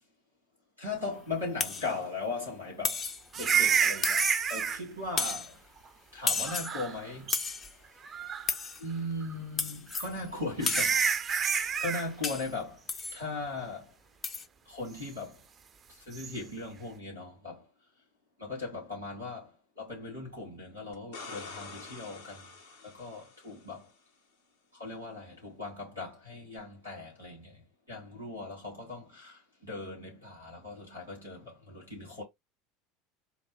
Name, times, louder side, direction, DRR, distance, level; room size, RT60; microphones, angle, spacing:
voice 1, 0.8-3.1 3.3-5.6 6.1-7.3 8.8-12.8 13.1-13.9 14.7-15.4 15.9-17.7 18.4-22.5 22.8-23.9 24.7-27.6 27.9-32.2, left 3 dB, 90° left, 2.7 m, -38 dB
sound 1, 1.6-1.9 2.8-3.3 4.0-4.5 5.2-5.5 6.3-6.8 7.3-7.7 8.5-8.8 9.6-10.1 10.6-11.0 12.2-12.5 12.9-13.2 14.2-14.4, left 4 dB, 30° left, 0.6 m, -32 dB
sound 2, 3.3-4.8 6.5-7.0 7.3-7.4 8.1-8.6 9.9-10.0 10.6-12.1 16.1-16.3, right 7 dB, 30° right, 0.5 m, -28 dB
sound 3, 20.9-23.8 26.6-26.7, left 4 dB, 70° left, 1.1 m, -46 dB
4.6 x 2.1 x 3.4 m
figure-of-eight pair, 75°, 0 cm